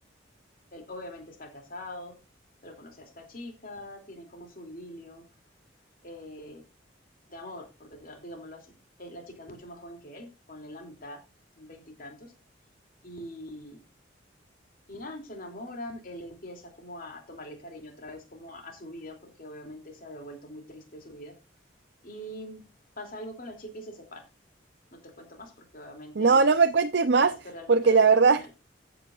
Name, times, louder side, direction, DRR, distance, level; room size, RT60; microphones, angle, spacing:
voice 1, 0.7-2.2 2.6-5.2 6.0-6.6 7.3-8.7 9.0-11.2 11.6-12.3 13.0-13.8 14.9-21.3 22.0-22.6 23.0-24.3 24.9-26.5 27.2-28.5, left 1 dB, 50° left, 3 dB, 2.9 m, -43 dB
voice 2, 26.2-27.3 27.7-28.6, right 4 dB, 60° right, 9 dB, 0.6 m, -20 dB
15.0 x 8.7 x 2.5 m, 0.26 s
head